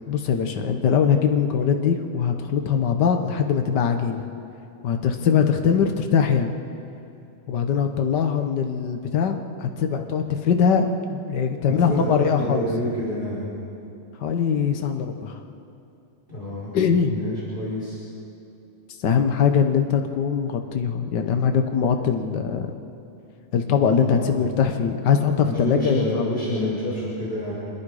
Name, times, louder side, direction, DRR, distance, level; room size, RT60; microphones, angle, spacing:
voice 1, 0.1-4.3 4.8-6.5 7.5-12.7 14.2-15.4 16.7-17.2 19.0-22.7 23.5-26.3, left 7 dB, 55° left, 5 dB, 1.2 m, -22 dB
voice 2, 11.6-13.4 16.3-16.7 17.1-18.0 24.0-24.4 25.4-27.5, equal, 15° left, -8 dB, 6.0 m, -28 dB
27.0 x 21.0 x 5.0 m, 2.7 s
omnidirectional pair, 3.4 m